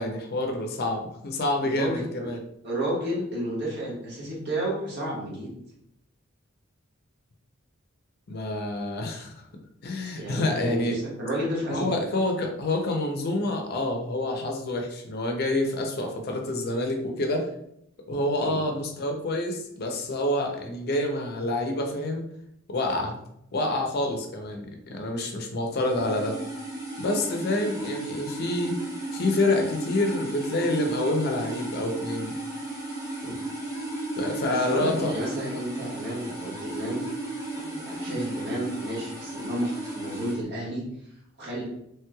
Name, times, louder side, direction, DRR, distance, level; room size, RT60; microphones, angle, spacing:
voice 1, 0.0-2.4 8.3-9.3 9.8-11.0 11.7-17.5 18.1-22.3 22.7-23.1 23.5-26.4 27.0-28.8 29.1-32.4 34.2-35.1 38.1-38.3, left 1 dB, 50° left, 3 dB, 0.5 m, -27 dB
voice 2, 1.6-2.3 2.6-5.5 10.2-11.9 18.4-18.6 33.2-33.4 34.5-37.0 37.5-40.8 41.4-41.6, right 1 dB, 55° right, -5 dB, 1.2 m, -31 dB
sound 1, 25.7-40.4, right 1 dB, 15° right, 0.7 m, -35 dB
3.1 x 3.0 x 2.2 m, 0.75 s
head